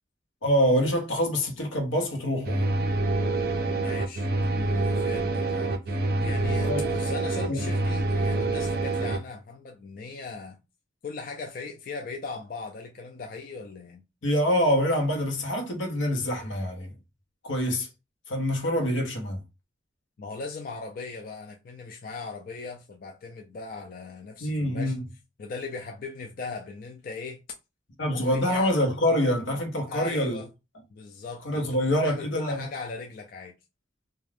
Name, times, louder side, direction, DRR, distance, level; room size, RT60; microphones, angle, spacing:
voice 1, 0.4-2.6 6.6-6.9 7.5-7.6 14.2-16.9 17.4-17.9 18.3-19.4 24.4-25.0 28.0-30.4 31.4-32.7, equal, 80° left, 0.9 m, -25 dB
sound 1, 2.4-9.2, right 2 dB, 55° right, 0.5 m, -26 dB
voice 2, 3.7-5.7 6.2-10.6 11.0-14.0 20.2-25.0 25.4-27.4 28.1-28.7 29.9-30.5 30.9-33.5, left 4 dB, 45° left, 0.3 m, -38 dB
2.4 x 2.3 x 3.3 m
head